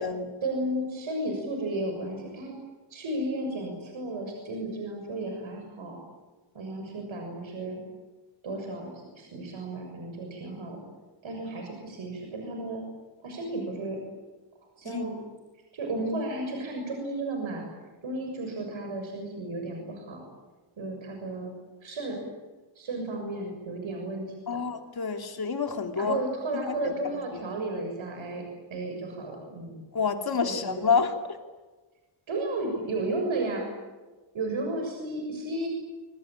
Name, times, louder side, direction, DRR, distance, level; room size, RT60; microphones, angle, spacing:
voice 1, 0.4-2.6 2.9-6.0 6.5-7.8 8.4-10.8 11.2-12.8 13.2-14.0 14.8-15.1 15.7-17.7 18.0-20.2 20.8-21.5 21.8-22.2 22.7-24.7 26.0-28.4 28.7-29.8 30.4-30.8 32.3-33.7 34.3-35.7, right 2 dB, 70° right, 2 dB, 6.9 m, -33 dB
voice 2, 24.5-26.2 26.5-27.4 29.9-31.4, left 5 dB, 50° left, 5 dB, 3.0 m, -29 dB
25.5 x 25.0 x 9.0 m, 1.3 s
wide cardioid pair, 165°, 48 cm